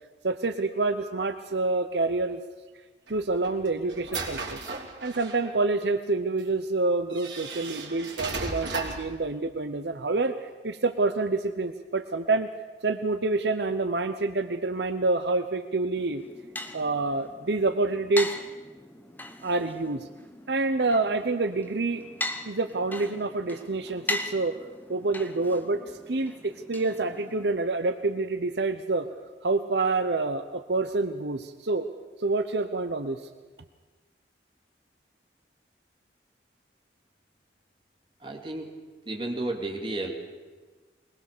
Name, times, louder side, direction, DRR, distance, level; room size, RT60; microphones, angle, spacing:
voice 1, 0.2-2.4 3.1-4.6 5.0-12.5 12.8-16.2 16.7-18.3 19.4-20.1 20.5-22.0 22.4-24.6 24.9-29.1 29.4-31.9 32.2-33.2, right 3 dB, 70° right, 8 dB, 0.8 m, -27 dB
sound 1, 3.1-5.5 6.4-6.5 7.1-9.1, right 3 dB, 85° right, 3.2 m, -35 dB
sound 2, 16.0-27.6, left 1 dB, 10° left, 1.1 m, -39 dB
voice 2, 38.2-38.7 39.0-40.1, right 2 dB, 25° right, 1 dB, 2.7 m, -32 dB
22.0 x 20.0 x 6.8 m, 1.3 s
head